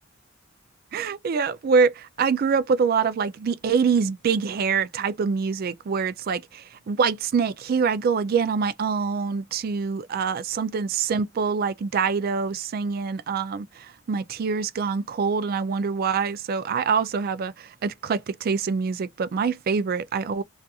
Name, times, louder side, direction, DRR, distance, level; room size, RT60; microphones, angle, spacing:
voice 1, 0.9-20.4, right 5 dB, 50° right, 0.3 m, -25 dB
2.6 x 2.4 x 2.3 m
head